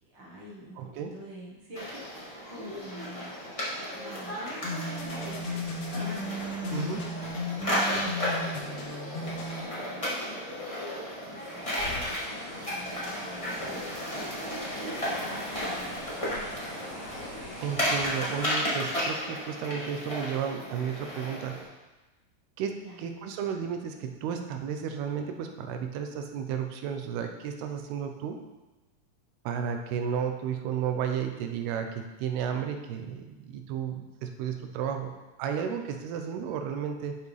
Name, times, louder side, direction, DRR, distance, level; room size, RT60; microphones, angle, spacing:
voice 1, 0.0-3.3 3.7-7.2 8.6-10.6 11.3-14.8 15.1-16.6 22.8-23.1, equal, 65° right, -5 dB, 1.1 m, -47 dB
voice 2, 0.8-1.1 6.7-7.0 17.6-21.6 22.6-28.4 29.5-35.1 35.4-37.2, right 7 dB, 85° right, 5 dB, 2.8 m, -33 dB
sound 1, 1.7-21.6, equal, 20° left, 0.8 m, -34 dB
sound 2, 4.6-9.6, left 1 dB, 65° left, 2.7 m, -35 dB
sound 3, 11.6-18.5, left 1 dB, 15° right, 3.0 m, -43 dB
11.0 x 6.7 x 3.4 m, 1.1 s
omnidirectional pair, 4.5 m